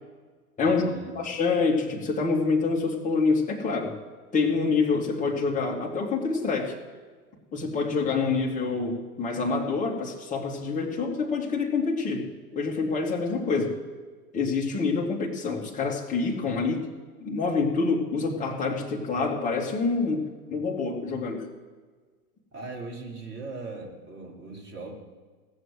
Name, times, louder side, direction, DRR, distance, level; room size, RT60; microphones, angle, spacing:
voice 1, 0.6-1.2 22.5-24.9, right 3 dB, 25° right, -1 dB, 4.6 m, -39 dB
voice 2, 1.1-3.9 4.3-6.7 7.5-12.3 12.5-13.8 14.3-16.8 17.2-21.4, left 4 dB, 15° left, -2 dB, 2.8 m, -26 dB
17.5 x 7.9 x 8.0 m, 1.4 s
figure-of-eight pair, 100°, 46 cm